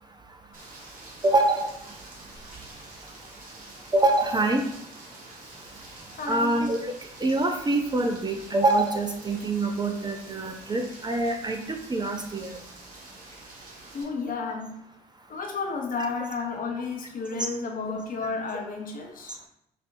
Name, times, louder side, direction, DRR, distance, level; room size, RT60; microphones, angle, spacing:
Rain, 0.5-14.0, right 2 dB, 45° right, 1.5 m, -47 dB
voice 1, 1.2-1.7 3.9-4.6 6.3-6.9 7.2-12.6 17.4-17.5, right 2 dB, 20° right, 3 dB, 0.6 m, -25 dB
voice 2, 6.2-6.6 13.9-14.7 15.3-19.4, left 4 dB, 50° left, 2 dB, 0.9 m, -32 dB
5.2 x 2.6 x 2.6 m, 0.79 s
hypercardioid pair, 50°, 19 cm